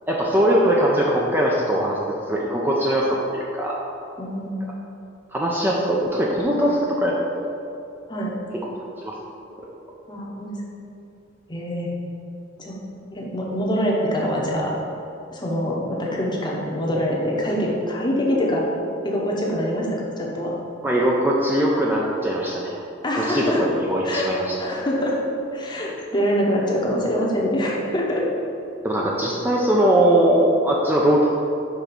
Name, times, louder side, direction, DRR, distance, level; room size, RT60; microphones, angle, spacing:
voice 1, 0.1-2.0 2.3-3.8 5.3-7.2 9.0-9.1 9.6-9.7 20.8-22.8 23.2-24.5 28.8-31.3, right 1 dB, 10° right, -4 dB, 0.5 m, -20 dB
voice 2, 4.2-4.6 8.1-8.3 10.1-10.6 11.5-11.9 12.6-12.8 13.1-14.7 15.3-18.7 19.0-20.5 23.0-23.6 24.0-24.3 24.6-25.2 25.5-28.2, equal, 25° left, -3 dB, 0.9 m, -24 dB
5.3 x 3.6 x 5.8 m, 2.7 s
head